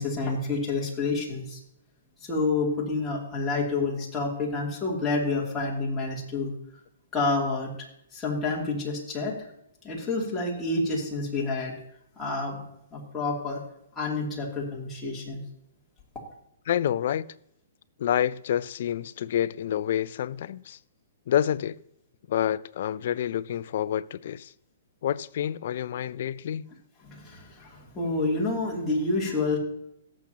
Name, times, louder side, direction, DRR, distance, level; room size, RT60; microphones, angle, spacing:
voice 1, 0.0-1.6 2.2-6.5 7.1-7.7 8.1-9.4 9.8-11.8 12.2-12.6 12.9-13.6 13.9-15.4 27.0-29.6, left 3 dB, 10° left, 2.8 m, -28 dB
voice 2, 16.7-17.2 18.0-20.8 21.3-21.8 22.3-24.5 25.0-26.7, left 10 dB, 55° left, 0.4 m, -28 dB
17.5 x 7.3 x 2.9 m
hypercardioid pair, 150°, 0 cm